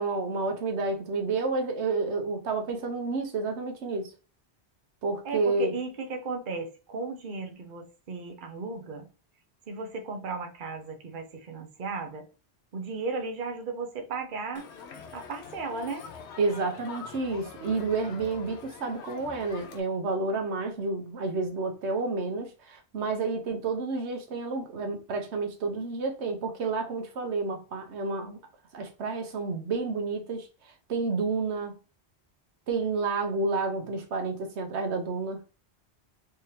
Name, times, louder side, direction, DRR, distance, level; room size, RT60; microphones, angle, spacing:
voice 1, 0.0-4.1 5.0-5.7 16.4-28.4 28.7-31.8 32.7-35.4, right 3 dB, 90° right, 1.1 m, -30 dB
voice 2, 5.2-9.1 9.7-12.3 12.7-14.7 15.1-16.1, right 4 dB, 50° right, 0.9 m, -35 dB
Crowd, 14.6-19.8, left 6 dB, 85° left, 1.0 m, -44 dB
3.5 x 3.3 x 2.8 m
omnidirectional pair, 1.1 m